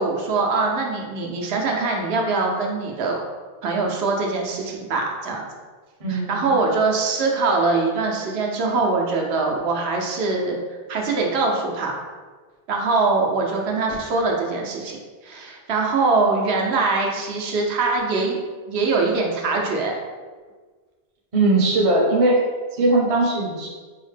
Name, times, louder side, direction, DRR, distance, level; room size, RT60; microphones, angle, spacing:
voice 1, 0.0-3.2 3.6-5.4 6.1-10.6 10.9-11.9 12.7-15.0 15.2-18.4 18.7-19.9, right 3 dB, 85° right, 0 dB, 0.9 m, -23 dB
voice 2, 6.0-6.5 21.3-22.4 22.7-23.7, right 2 dB, 40° right, -1 dB, 0.6 m, -19 dB
4.6 x 2.1 x 3.2 m, 1.4 s
omnidirectional pair, 1.0 m